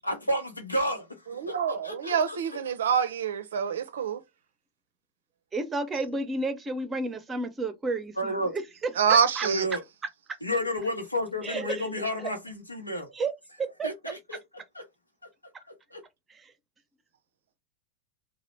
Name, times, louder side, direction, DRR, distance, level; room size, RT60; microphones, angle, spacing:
voice 1, 0.0-2.4 8.2-8.5 9.4-9.8 10.4-13.1 13.8-14.4 14.7-14.8 15.9-16.0, equal, 85° left, 0.9 m, -31 dB
voice 2, 1.3-4.2 9.0-9.7, right 7 dB, 65° right, 0.5 m, -26 dB
voice 3, 5.5-8.6 9.1-9.5 11.4-11.8 13.1-13.3 13.8-13.9, right 3 dB, 20° right, 0.7 m, -31 dB
2.8 x 2.3 x 3.2 m
figure-of-eight pair, 90°, 0 cm